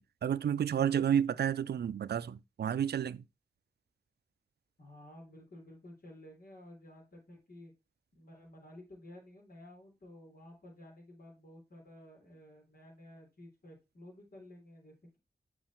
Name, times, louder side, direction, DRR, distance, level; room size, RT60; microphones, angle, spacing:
voice 1, 0.0-3.2, right 9 dB, 80° right, 0.4 m, -31 dB
voice 2, 4.8-7.7 8.1-15.2, left 1 dB, 65° left, 3.9 m, -53 dB
7.5 x 5.1 x 4.5 m
cardioid pair, 50°, 17 cm